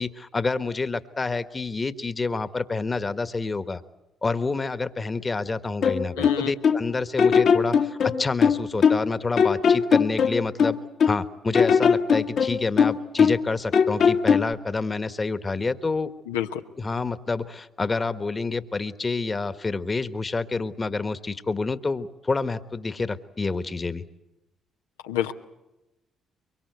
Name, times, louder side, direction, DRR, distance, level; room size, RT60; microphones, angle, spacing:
voice 1, 0.0-3.8 4.2-10.8 11.1-16.1 16.8-24.0, left 3 dB, 30° left, 12 dB, 1.4 m, -28 dB
sound 1, 5.8-6.8 7.2-9.1 9.4-11.2 11.5-13.5 13.7-14.5, left 6 dB, 60° left, 1.7 m, -20 dB
voice 2, 6.2-6.5 16.3-16.6 25.0-25.3, left 10 dB, 85° left, 6 dB, 1.0 m, -28 dB
24.0 x 23.0 x 8.1 m, 1.0 s
hypercardioid pair, 50°, 0 cm